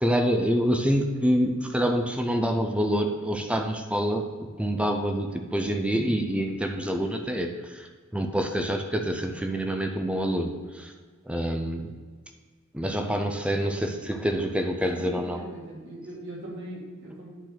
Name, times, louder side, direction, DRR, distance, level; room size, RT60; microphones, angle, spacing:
voice 1, 0.0-4.2 4.6-7.5 7.7-7.9 8.1-10.9 11.3-11.9 12.7-15.4, equal, 5° right, 4 dB, 0.6 m, -26 dB
voice 2, 14.9-17.3, right 1 dB, 60° right, -4 dB, 2.8 m, -40 dB
9.2 x 4.1 x 6.1 m, 1.5 s
head